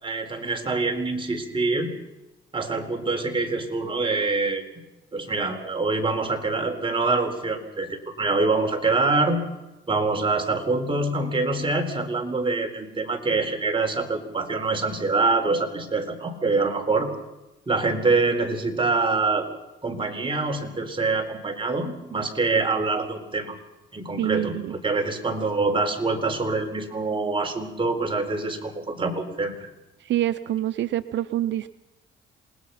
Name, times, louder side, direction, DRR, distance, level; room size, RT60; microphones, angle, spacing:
voice 1, 0.0-1.9 2.5-4.6 5.1-9.5 9.9-17.1 17.7-19.5 19.8-23.6 23.9-29.7, right 3 dB, 25° right, 4 dB, 4.3 m, -25 dB
voice 2, 24.2-24.7 30.0-31.7, right 13 dB, 70° right, 12 dB, 0.7 m, -26 dB
28.5 x 20.0 x 5.8 m, 1.0 s
cardioid pair, 90°, 20 cm